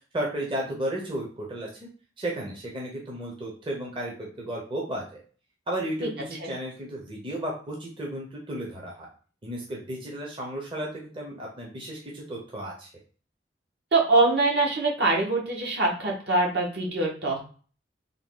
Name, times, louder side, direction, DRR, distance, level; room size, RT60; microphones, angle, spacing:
voice 1, 0.1-1.9 2.2-5.2 5.7-9.1 9.4-12.9, right 1 dB, 30° right, -2 dB, 0.7 m, -34 dB
voice 2, 13.9-17.5, right 2 dB, 65° right, -2 dB, 1.1 m, -23 dB
3.5 x 2.3 x 3.8 m, 0.40 s
head